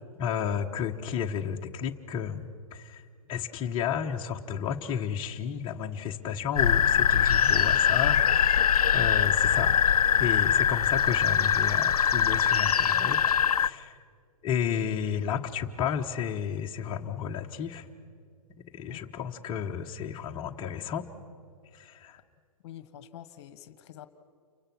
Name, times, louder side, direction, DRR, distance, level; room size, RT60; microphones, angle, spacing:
voice 1, 0.2-3.0 3.3-9.8 10.2-14.0 14.4-17.9 18.7-21.0 21.7-22.2, left 8 dB, 25° left, 1 dB, 1.3 m, -32 dB
sound 1, 6.6-13.7, left 8 dB, 80° left, 0.6 m, -23 dB
voice 2, 22.6-24.1, left 11 dB, 50° left, 13 dB, 1.5 m, -46 dB
29.5 x 24.0 x 6.2 m, 2.2 s
hypercardioid pair, 125°, 19 cm